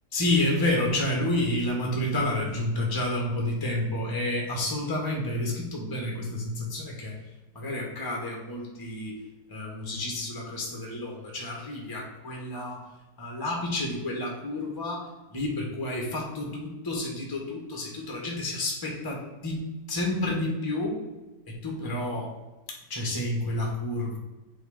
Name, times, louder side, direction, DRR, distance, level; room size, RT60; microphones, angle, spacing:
voice 1, 0.1-7.1 7.5-9.2 9.5-12.8 13.2-15.1 15.3-19.6 19.9-21.0 21.6-22.3 22.9-24.2, left 1 dB, 15° left, -1 dB, 1.2 m, -30 dB
7.4 x 3.1 x 5.0 m, 1.1 s
omnidirectional pair, 2.0 m